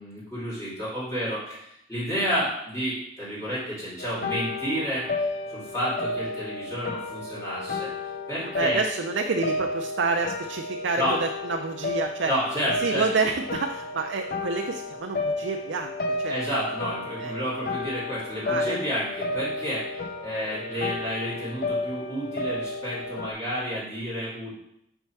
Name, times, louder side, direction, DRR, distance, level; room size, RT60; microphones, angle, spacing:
voice 1, 0.0-5.1 5.5-7.9 8.3-8.8 11.0-11.2 12.3-13.0 16.3-19.9 20.2-24.5, equal, 15° left, -9 dB, 2.5 m, -30 dB
sound 1, 4.0-23.3, left 2 dB, 50° left, 0.6 m, -32 dB
voice 2, 8.4-12.3 12.8-16.4 17.2-17.3 18.4-18.8, right 4 dB, 65° right, 4 dB, 0.4 m, -28 dB
4.5 x 4.3 x 5.8 m, 0.78 s
head